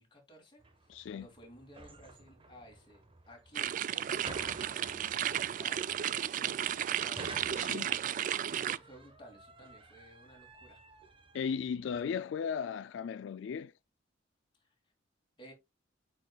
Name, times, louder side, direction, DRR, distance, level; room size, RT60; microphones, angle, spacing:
voice 1, 0.0-10.8 14.6-14.7 15.4-15.5, equal, 25° left, 2.6 m, -56 dB
sound 1, 0.6-12.1, right 2 dB, 30° right, 1.1 m, -52 dB
voice 2, 0.9-1.3 7.5-7.9 11.3-13.7, left 6 dB, 85° left, 0.3 m, -36 dB
sound 2, 3.6-8.8, right 10 dB, 45° right, 0.3 m, -34 dB
8.6 x 5.0 x 2.3 m
head